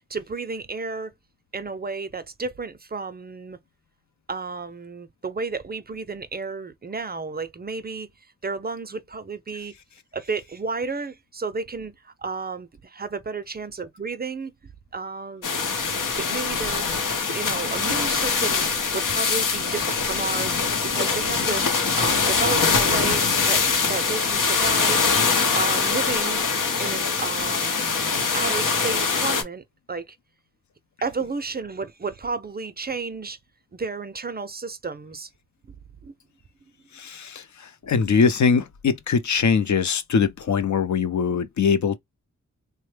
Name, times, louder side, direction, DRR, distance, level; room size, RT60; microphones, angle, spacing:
voice 1, 0.1-1.1 1.5-3.6 4.3-8.1 8.4-9.7 10.1-14.5 14.9-15.5 16.1-16.8 17.3-20.6 20.9-21.6 22.0-23.2 23.5-25.1 25.4-26.4 26.8-30.2 31.0-33.4 33.7-35.3 36.0-36.1 41.2-41.4, right 4 dB, 30° right, 0.4 m, -32 dB
sound 1, 15.4-29.4, left 5 dB, 90° left, 0.8 m, -23 dB
voice 2, 36.9-42.0, left 6 dB, 65° left, 0.5 m, -22 dB
3.2 x 2.1 x 3.1 m
wide cardioid pair, 105°, 31 cm